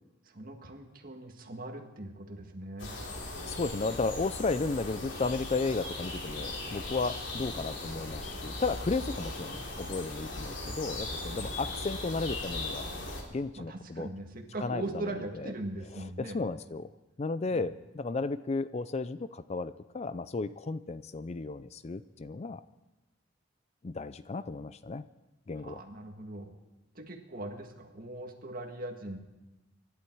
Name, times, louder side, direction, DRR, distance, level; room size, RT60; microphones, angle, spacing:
voice 1, 0.3-2.9 11.3-11.6 13.6-16.4 17.5-17.7 25.6-26.5 27.0-29.2, right 2 dB, 50° right, 3 dB, 2.0 m, -40 dB
sound 1, 2.8-13.2, left 2 dB, 75° left, 3.0 m, -38 dB
voice 2, 3.5-12.9 13.3-14.1 14.6-15.5 16.2-16.9 17.2-22.6 23.8-25.0 25.5-25.8, left 3 dB, 35° left, 14 dB, 0.4 m, -34 dB
25.5 x 11.5 x 4.7 m, 1.0 s
head